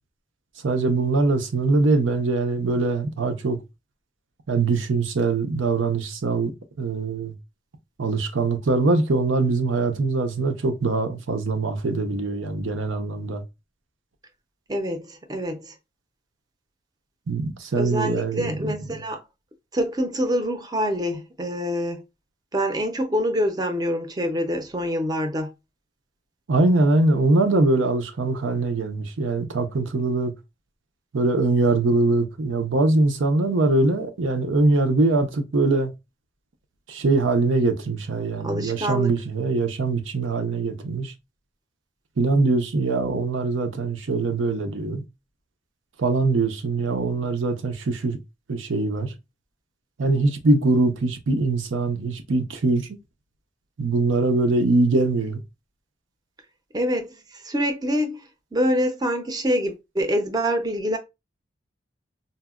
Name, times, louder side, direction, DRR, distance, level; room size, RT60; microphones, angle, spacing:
voice 1, 0.6-3.6 4.5-6.5 6.8-7.3 8.0-13.4 17.3-18.8 26.5-30.3 31.1-35.9 36.9-41.1 42.2-45.0 46.0-48.2 48.5-49.1 50.0-52.9 53.8-55.4, right 3 dB, 90° right, 0.6 m, -22 dB
voice 2, 14.7-15.7 17.7-19.2 19.7-22.0 22.5-25.5 38.4-39.1 56.7-58.2 58.5-61.0, equal, 20° right, 0.5 m, -25 dB
4.0 x 2.1 x 2.3 m
head